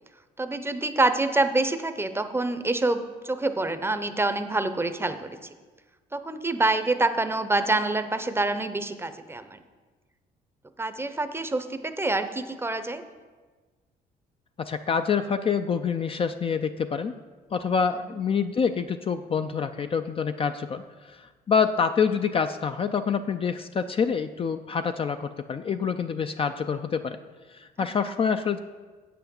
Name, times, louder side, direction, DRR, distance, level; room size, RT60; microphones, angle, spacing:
voice 1, 0.4-5.4 6.1-9.6 10.8-13.0 28.1-28.2, right 2 dB, 15° right, 9 dB, 0.7 m, -26 dB
voice 2, 14.6-17.1 17.5-27.2 27.5-28.6, left 6 dB, 35° left, 8 dB, 0.4 m, -26 dB
7.9 x 5.9 x 7.0 m, 1.4 s
cardioid pair, 90°, 17 cm